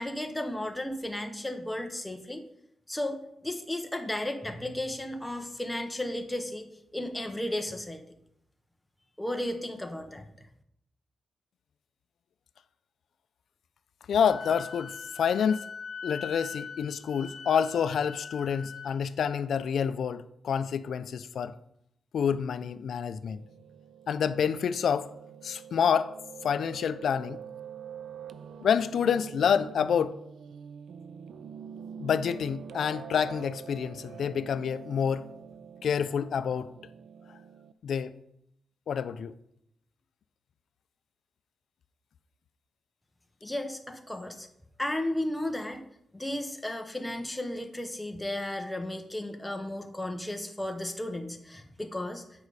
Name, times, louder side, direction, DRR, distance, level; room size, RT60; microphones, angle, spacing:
voice 1, 0.0-2.4 2.9-6.7 6.9-8.0 9.2-10.5 43.4-44.5 44.8-45.8 46.1-52.2, left 1 dB, 5° left, 0.8 m, -34 dB
voice 2, 14.1-15.7 16.0-21.5 22.1-23.4 24.1-25.1 25.4-27.4 28.6-30.2 32.0-35.2 35.8-36.7 37.8-38.1 38.9-39.3, left 7 dB, 65° left, 0.4 m, -28 dB
Wind instrument woodwind instrument, 14.2-19.0, left 5 dB, 45° left, 1.1 m, -42 dB
Piano, 23.3-37.7, right 7 dB, 70° right, 0.4 m, -45 dB
8.9 x 5.3 x 4.8 m
wide cardioid pair, 175°, 0 cm